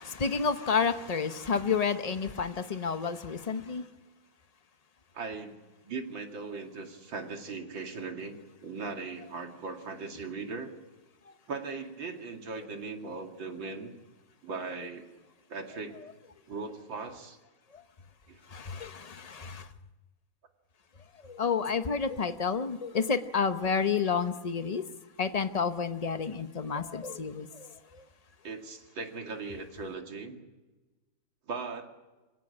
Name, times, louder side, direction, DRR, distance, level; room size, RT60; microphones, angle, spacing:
voice 1, 0.0-3.9 12.5-12.6 18.5-19.7 21.2-24.8 25.2-27.7 27.9-28.0, left 5 dB, 45° left, 0.4 m, -30 dB
voice 2, 5.1-10.7 11.5-13.9 14.4-15.1 15.5-16.1 16.5-17.4 18.3-18.4 28.4-30.4 31.5-31.9, right 4 dB, 75° right, 3.1 m, -39 dB
26.0 x 17.5 x 8.7 m
omnidirectional pair, 2.1 m